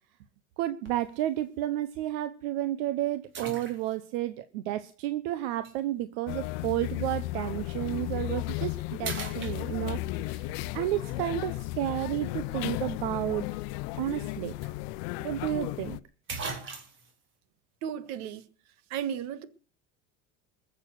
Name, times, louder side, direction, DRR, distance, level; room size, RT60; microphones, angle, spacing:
voice 1, 0.6-13.5 13.9-14.6 15.2-16.0, right 14 dB, 80° right, 1.0 m, -32 dB
sound 1, 0.9-1.2 1.8-1.9 3.3-4.2 5.6-5.8 7.9-8.1 8.5-8.7 9.0-10.1 14.2-14.3 14.6-14.7 15.8-15.9 16.3-17.1, right 4 dB, 40° right, 3.8 m, -39 dB
sound 2, 6.3-16.0, left 19 dB, 80° left, 0.7 m, -34 dB
voice 2, 17.8-18.5 18.9-19.4, right 9 dB, 65° right, 1.6 m, -34 dB
21.5 x 7.5 x 6.4 m
cardioid pair, 135°, 29 cm